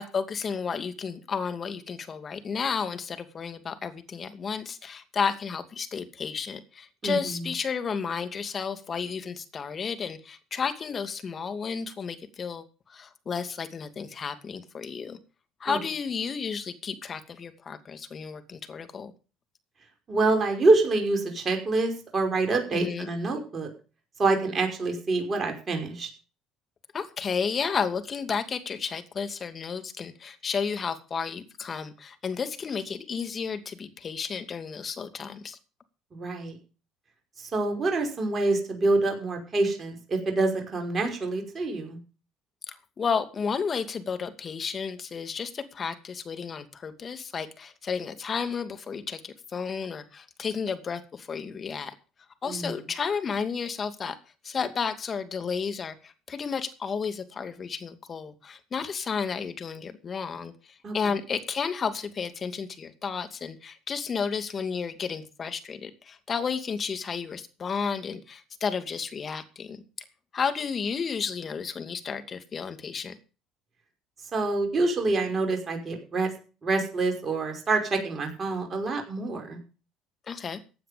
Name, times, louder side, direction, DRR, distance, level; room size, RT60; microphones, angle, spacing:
voice 1, 0.0-15.2 15.6-19.1 22.7-23.1 26.9-35.6 42.7-51.9 52.4-54.2 54.4-69.8 70.3-73.2 80.3-80.6, left 6 dB, 40° left, 9 dB, 2.5 m, -32 dB
voice 2, 7.0-7.5 15.7-15.8 20.1-23.7 24.2-26.1 36.1-36.6 37.4-42.0 52.5-52.8 60.8-60.9 74.3-76.3 76.6-79.6, right 3 dB, 35° right, 3 dB, 5.5 m, -26 dB
16.0 x 9.3 x 5.2 m, 0.36 s
hypercardioid pair, 65°, 0 cm